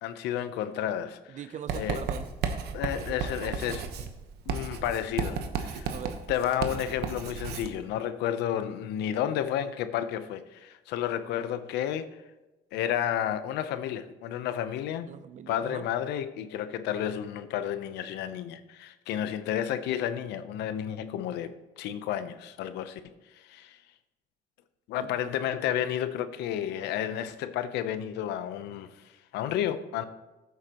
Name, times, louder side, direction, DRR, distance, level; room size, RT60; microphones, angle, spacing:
voice 1, 0.0-1.4 1.7-2.0 2.7-3.8 4.5-5.9 6.3-12.1 12.7-15.1 15.5-23.0 23.4-23.8 24.9-28.9 29.3-30.0, left 10 dB, 85° left, 0.7 m, -31 dB
voice 2, 1.3-2.3 3.0-4.1 5.9-6.2 15.1-15.9 24.9-25.3, right 8 dB, 45° right, 0.6 m, -42 dB
Writing, 1.7-7.7, right 6 dB, 75° right, 1.1 m, -34 dB
14.5 x 8.0 x 3.0 m
cardioid pair, 110°, 17 cm